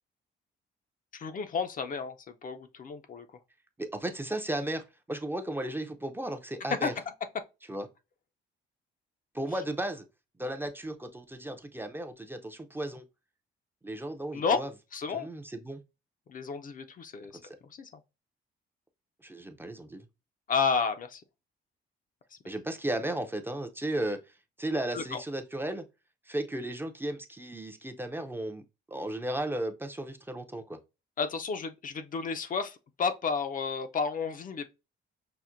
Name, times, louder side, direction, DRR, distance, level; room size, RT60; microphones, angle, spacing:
voice 1, 1.1-3.3 6.7-6.9 7.3-7.4 14.3-14.6 14.9-15.3 16.3-17.3 17.8-17.9 20.5-21.2 24.9-25.2 31.2-34.7, left 5 dB, 45° left, 0.4 m, -31 dB
voice 2, 3.8-6.9 7.7-7.9 9.3-10.0 10.4-13.0 13.8-14.7 15.1-15.8 17.4-17.6 19.2-20.1 22.5-25.8 26.3-28.6 28.9-30.8, right 1 dB, 10° right, 0.5 m, -35 dB
5.7 x 2.1 x 2.5 m
cardioid pair, 90°, 20 cm